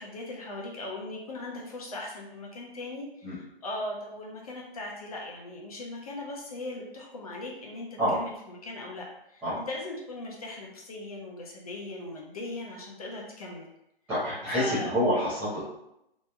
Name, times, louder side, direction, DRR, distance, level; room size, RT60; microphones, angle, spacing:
voice 1, 0.0-13.7 14.5-14.9, left 2 dB, 40° left, -2 dB, 0.7 m, -39 dB
voice 2, 14.1-15.6, equal, 5° right, -14 dB, 0.6 m, -27 dB
3.0 x 2.6 x 3.4 m, 0.83 s
hypercardioid pair, 160°, 30 cm